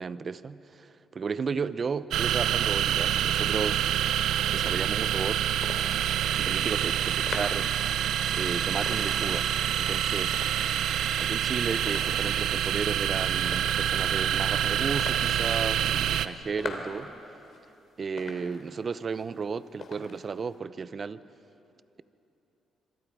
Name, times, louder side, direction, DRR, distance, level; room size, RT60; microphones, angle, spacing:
voice 1, 0.0-3.9 4.5-5.4 6.3-7.7 8.3-10.4 11.2-17.1 18.0-21.2, right 5 dB, 40° right, 0.7 m, -34 dB
sound 1, 2.1-16.3, right 10 dB, 80° right, 0.7 m, -27 dB
Tools, 2.8-3.6 5.7-6.6 8.7-9.6 11.7-12.6, left 3 dB, 35° left, 2.0 m, -48 dB
sound 2, 4.5-20.6, left 4 dB, 55° left, 2.8 m, -45 dB
25.5 x 24.0 x 4.8 m
cardioid pair, 90°, 0 cm